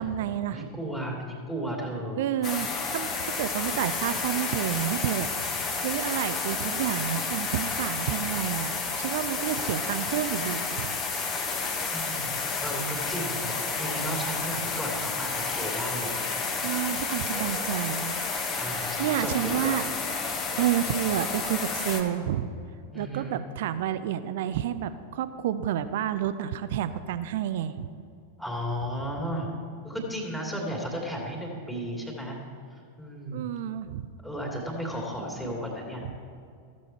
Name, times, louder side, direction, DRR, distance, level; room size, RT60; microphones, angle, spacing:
voice 1, 0.0-0.6 2.2-5.6 5.8-10.9 16.6-18.2 19.0-19.9 20.6-22.5 22.9-27.9 33.3-34.1, right 11 dB, 55° right, 12 dB, 0.5 m, -30 dB
voice 2, 0.5-2.2 11.9-16.4 18.6-19.7 22.9-23.4 28.4-29.5 29.8-32.4 33.0-33.5 34.2-36.1, equal, 5° left, -2 dB, 2.5 m, -34 dB
sound 1, 2.4-22.0, left 4 dB, 30° left, 1.4 m, -31 dB
14.5 x 7.0 x 4.5 m, 2.4 s
figure-of-eight pair, 90°, 0 cm